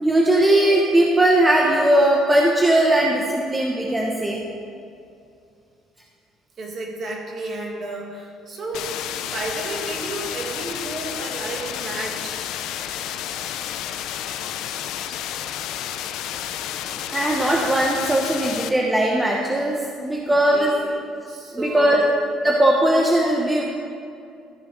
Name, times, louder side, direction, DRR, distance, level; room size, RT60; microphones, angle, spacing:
voice 1, 0.0-4.4 17.1-20.7 21.5-22.0 22.4-23.6, right 1 dB, 10° right, -1 dB, 0.9 m, -19 dB
voice 2, 6.6-8.9 9.2-12.4 20.3-21.0 21.3-22.1, right 2 dB, 40° right, 0 dB, 2.0 m, -32 dB
sound 1, 8.7-18.7, left 10 dB, 75° left, 0.6 m, -31 dB
13.5 x 7.0 x 5.2 m, 2.5 s
cardioid pair, 140°, 0 cm